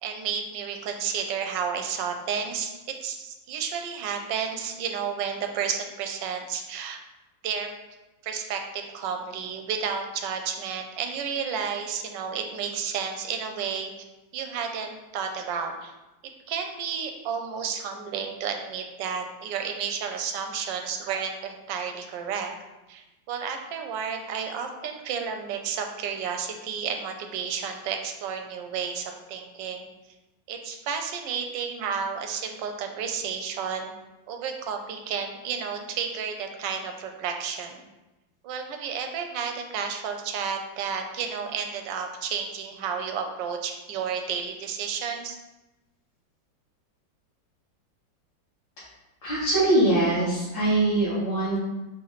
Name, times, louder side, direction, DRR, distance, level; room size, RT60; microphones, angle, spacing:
voice 1, 0.0-7.0 7.4-7.7 8.2-13.9 14.3-15.9 16.2-22.5 22.9-29.9 30.5-33.9 34.3-37.8 38.4-45.4, right 6 dB, 80° right, 5 dB, 1.2 m, -32 dB
voice 2, 49.2-51.6, right 2 dB, 80° left, -11 dB, 2.0 m, -22 dB
4.1 x 3.2 x 3.9 m, 1.0 s
omnidirectional pair, 2.0 m